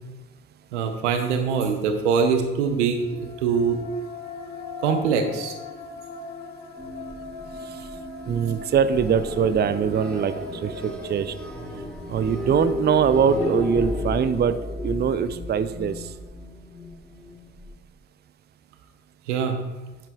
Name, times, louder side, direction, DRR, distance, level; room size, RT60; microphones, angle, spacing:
voice 1, 0.7-3.8 4.8-5.5 19.3-19.5, right 6 dB, 85° right, 6 dB, 0.8 m, -23 dB
sound 1, 2.9-12.1, left 3 dB, 70° left, 1.1 m, -40 dB
sound 2, 6.8-17.7, left 1 dB, 5° left, 2.3 m, -33 dB
voice 2, 8.3-10.3 10.6-11.3 12.1-14.6 14.8-15.9, right 7 dB, 30° right, 13 dB, 0.5 m, -22 dB
9.1 x 8.9 x 2.3 m, 1.1 s
hypercardioid pair, 45°, 34 cm